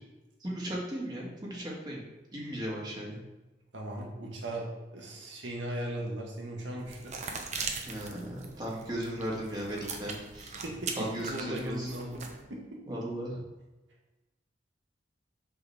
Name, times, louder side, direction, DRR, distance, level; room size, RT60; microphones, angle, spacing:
voice 1, 0.4-2.0 2.3-3.2 7.9-10.5 11.0-11.9 12.9-13.4, equal, 25° right, -4 dB, 1.9 m, -36 dB
voice 2, 3.7-7.1 10.6-12.2 12.5-12.8, right 1 dB, 90° right, -1 dB, 1.6 m, -38 dB
sound 1, 6.8-12.4, right 4 dB, 40° right, 0.9 m, -40 dB
7.8 x 4.0 x 5.8 m, 1.1 s
head